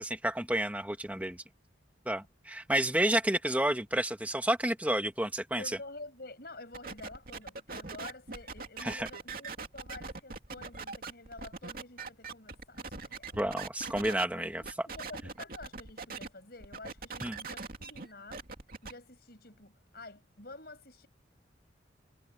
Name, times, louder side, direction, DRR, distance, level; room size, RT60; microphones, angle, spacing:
voice 1, 0.0-1.4 2.1-5.6 8.8-9.1 13.3-14.6 17.2-17.4, right 1 dB, 10° right, 1.8 m, -30 dB
voice 2, 5.6-13.4 14.4-18.4 18.8-21.1, left 2 dB, 55° left, 7.2 m, -49 dB
sound 1, 6.7-14.2 14.6-16.3 16.6-18.9, right 4 dB, 50° right, 2.7 m, -42 dB
head